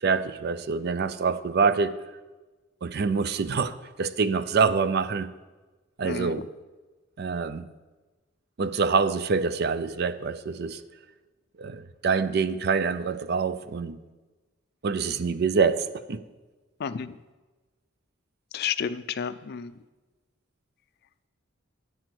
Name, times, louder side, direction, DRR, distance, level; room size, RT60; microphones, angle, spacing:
voice 1, 0.0-2.0 2.8-5.3 6.0-6.5 7.2-7.7 8.6-10.8 11.6-14.0 14.8-16.2, right 5 dB, 55° right, 0.4 m, -26 dB
voice 2, 16.8-17.1 18.5-19.7, left 7 dB, 55° left, 0.4 m, -31 dB
10.0 x 4.4 x 7.8 m
head